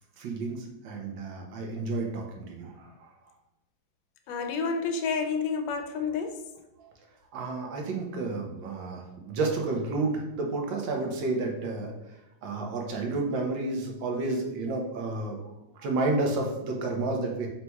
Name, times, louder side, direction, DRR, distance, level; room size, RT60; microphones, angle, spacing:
voice 1, 0.2-2.9 7.3-11.9 12.4-15.4 15.8-17.5, right 3 dB, 90° right, 1 dB, 1.5 m, -31 dB
voice 2, 4.3-6.5, left 5 dB, 80° left, 6 dB, 1.2 m, -30 dB
4.1 x 2.3 x 4.4 m, 0.92 s
omnidirectional pair, 2.0 m